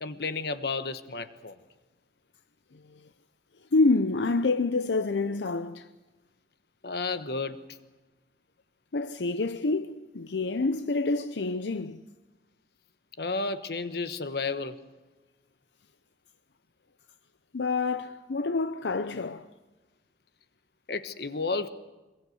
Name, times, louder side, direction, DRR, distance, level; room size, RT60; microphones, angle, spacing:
voice 1, 0.0-1.6 6.8-7.6 13.2-14.8 17.9-18.0 20.9-21.7, left 3 dB, 65° left, 1.2 m, -32 dB
voice 2, 2.7-3.1 3.7-5.9 8.9-12.0 17.5-19.5, left 3 dB, 90° left, 0.7 m, -27 dB
23.5 x 21.5 x 7.9 m
head